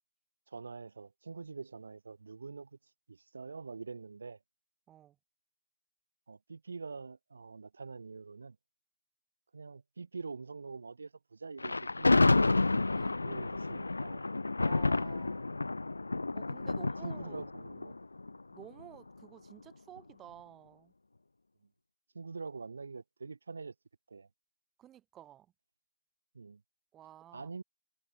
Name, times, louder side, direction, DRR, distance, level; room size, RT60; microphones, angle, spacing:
voice 1, 0.5-2.7 3.1-4.4 6.3-8.6 9.5-12.6 13.2-14.3 16.7-18.0 22.1-23.7 24.1-24.3 26.3-26.6 27.3-27.6, right 4 dB, 40° right, 4.5 m, -45 dB
Thunder, 11.6-18.8, left 3 dB, 60° left, 1.0 m, -30 dB
voice 2, 14.6-15.6 16.3-17.4 18.5-20.9 24.8-25.5 26.9-27.5, right 12 dB, 5° right, 4.2 m, -53 dB
figure-of-eight pair, 175°, 0 cm